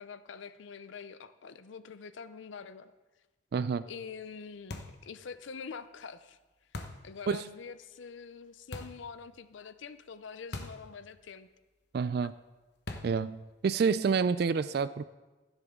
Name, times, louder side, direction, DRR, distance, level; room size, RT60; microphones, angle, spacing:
voice 1, 0.0-2.9 3.9-6.4 7.0-11.5, left 5 dB, 70° left, 13 dB, 0.5 m, -45 dB
voice 2, 3.5-3.9 7.3-7.4 11.9-12.4 13.0-15.0, right 5 dB, 50° right, 15 dB, 0.3 m, -28 dB
sound 1, 4.7-5.1 6.7-7.1 8.7-9.1 10.5-10.9 11.2-11.3 12.9-13.3, left 2 dB, 55° left, 1.0 m, -41 dB
15.0 x 9.9 x 3.7 m, 1.2 s
head